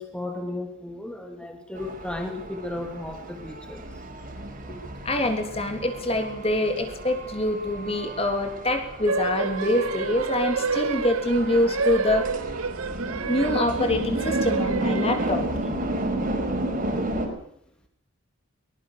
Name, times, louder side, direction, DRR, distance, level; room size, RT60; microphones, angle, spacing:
voice 1, 0.0-3.8, left 2 dB, 5° left, 3 dB, 2.8 m, -34 dB
sound 1, 1.7-17.3, right 1 dB, 40° right, 5.4 m, -32 dB
voice 2, 5.0-12.3 13.3-15.5, left 1 dB, 25° left, 6 dB, 3.3 m, -25 dB
sound 2, 9.1-15.6, right 4 dB, 80° right, 1.0 m, -29 dB
23.0 x 20.5 x 6.7 m, 0.69 s
head